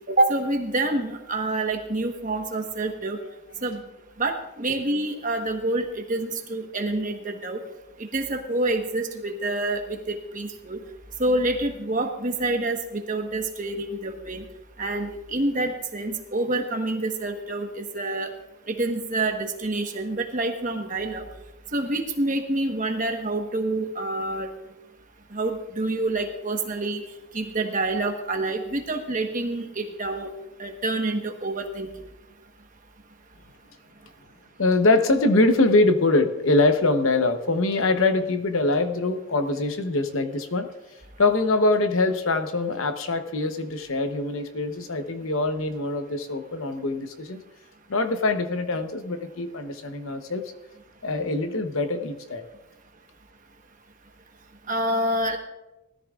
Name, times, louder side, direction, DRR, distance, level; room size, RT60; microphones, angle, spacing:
voice 1, 0.1-3.2 3.6-3.8 4.2-7.6 8.1-10.8 11.2-14.4 14.8-18.3 18.7-21.2 21.7-24.5 25.3-27.0 27.3-30.3 30.6-31.9 54.7-55.4, right 2 dB, 35° right, 4 dB, 1.2 m, -27 dB
voice 2, 34.6-40.7 41.2-47.4 47.9-50.4 51.0-52.4, left 2 dB, 65° left, 8 dB, 0.9 m, -23 dB
20.0 x 13.5 x 2.4 m, 1.0 s
head